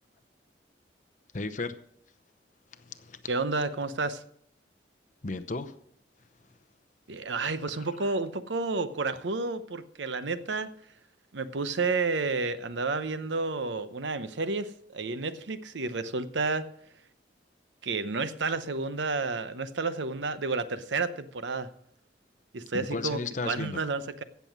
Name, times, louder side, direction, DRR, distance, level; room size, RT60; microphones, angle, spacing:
voice 1, 1.3-1.8 2.9-3.2 5.2-5.7 22.7-23.8, left 3 dB, 45° left, 9 dB, 0.8 m, -34 dB
voice 2, 3.3-4.2 7.1-10.7 11.3-16.7 17.8-21.7 22.5-24.2, right 3 dB, 85° right, 12 dB, 0.8 m, -31 dB
16.0 x 7.0 x 6.0 m, 0.69 s
head